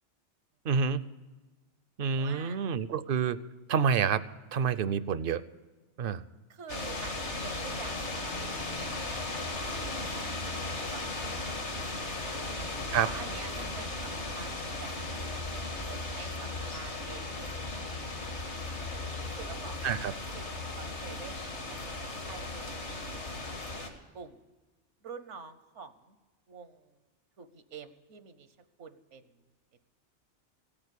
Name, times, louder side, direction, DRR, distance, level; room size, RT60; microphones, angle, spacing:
voice 1, 0.6-1.0 2.0-3.4 3.7-4.2 4.5-5.4 6.0-6.2 12.9-13.1 19.8-20.1, right 6 dB, 60° right, 16 dB, 0.7 m, -28 dB
voice 2, 2.2-2.6 3.8-4.0 6.5-11.7 12.0-12.6 13.0-18.7 19.4-24.4 25.0-26.2 26.5-27.0 27.4-29.4, right 6 dB, 80° right, 11 dB, 1.3 m, -49 dB
sound 1, 6.7-23.9, left 2 dB, 75° left, 2.1 m, -36 dB
16.5 x 8.8 x 8.3 m, 1.3 s
omnidirectional pair, 1.2 m